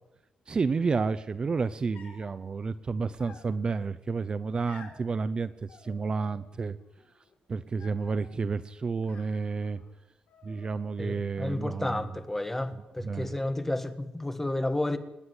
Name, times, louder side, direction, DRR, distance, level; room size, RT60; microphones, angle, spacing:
voice 1, 0.5-6.8 7.5-9.8 10.4-12.2 12.7-13.4, right 4 dB, 30° right, 14 dB, 0.6 m, -31 dB
sound 1, 1.9-2.4 3.2-3.9 4.7-5.1 5.7-6.5 6.8-7.3 7.8-8.3 9.0-9.9 10.3-11.0, left 5 dB, 70° left, 5.4 m, -53 dB
voice 2, 11.0-15.0, left 1 dB, 10° left, 9 dB, 1.5 m, -31 dB
27.0 x 10.5 x 9.7 m, 0.95 s
wide cardioid pair, 150°, 3 cm